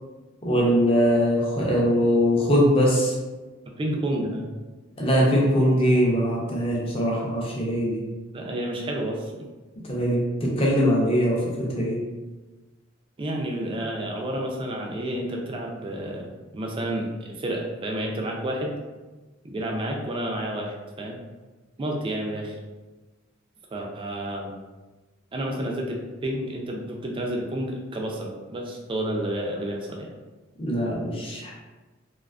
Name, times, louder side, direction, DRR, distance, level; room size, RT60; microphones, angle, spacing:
voice 1, 0.4-3.2 5.0-8.0 9.8-12.0 30.6-31.5, equal, 25° left, -4 dB, 0.5 m, -22 dB
voice 2, 3.7-4.5 8.3-9.3 13.2-17.1 17.4-18.7 19.4-21.2 21.8-22.6 23.7-24.5 25.3-30.1, right 1 dB, 25° right, 0 dB, 0.3 m, -30 dB
2.4 x 2.3 x 2.3 m, 1.2 s
head